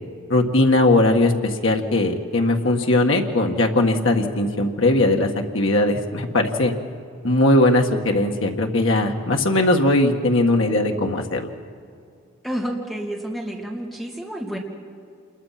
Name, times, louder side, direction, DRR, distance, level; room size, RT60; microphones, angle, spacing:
voice 1, 0.3-6.7 7.2-11.5, left 2 dB, 70° left, 2 dB, 1.7 m, -19 dB
voice 2, 12.4-14.6, right 1 dB, ahead, -2 dB, 2.9 m, -29 dB
27.0 x 22.0 x 5.9 m, 2.3 s
head